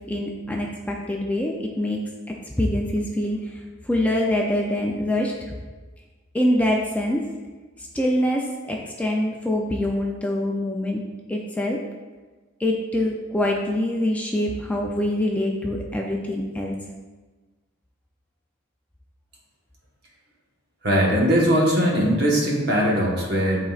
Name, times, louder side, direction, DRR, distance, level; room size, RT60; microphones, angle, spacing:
voice 1, 0.1-2.0 2.6-3.4 3.9-5.3 6.3-7.2 7.9-11.0 11.3-11.8 12.6-16.8, left 1 dB, 10° left, -1 dB, 0.4 m, -24 dB
voice 2, 20.8-23.6, equal, 55° right, -2 dB, 1.3 m, -20 dB
10.5 x 3.9 x 2.4 m, 1.3 s
head